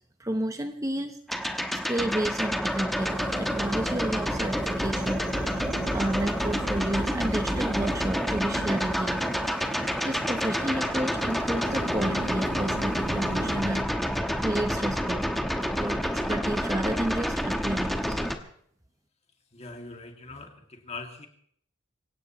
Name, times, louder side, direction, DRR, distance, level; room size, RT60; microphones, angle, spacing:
voice 1, 0.2-1.2 1.7-3.1 3.4-5.7 5.9-15.2 15.8-18.2, right 1 dB, 15° right, 7 dB, 0.8 m, -31 dB
sound 1, 1.3-18.4, equal, ahead, 1.1 m, -28 dB
sound 2, 3.0-13.8, right 3 dB, 60° right, 0.8 m, -41 dB
voice 2, 19.5-21.3, left 3 dB, 30° left, 3 dB, 2.3 m, -41 dB
26.0 x 16.5 x 3.1 m, 0.62 s
head